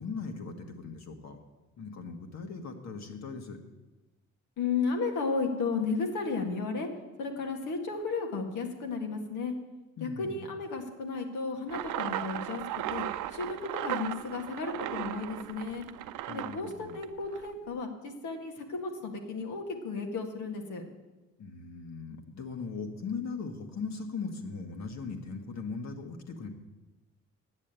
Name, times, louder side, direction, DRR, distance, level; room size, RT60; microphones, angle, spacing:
voice 1, 0.0-1.4 1.8-3.6 10.0-10.5 16.3-17.0 21.4-26.5, left 4 dB, 60° left, 5 dB, 1.7 m, -39 dB
voice 2, 4.6-6.9 7.2-9.6 10.0-12.6 12.9-13.1 13.3-15.9 16.3-20.8, left 4 dB, 80° left, 3 dB, 1.8 m, -33 dB
sound 1, 11.7-17.5, right 13 dB, 85° right, 0.6 m, -36 dB
9.0 x 7.4 x 8.9 m, 1.2 s
cardioid pair, 90°, 30 cm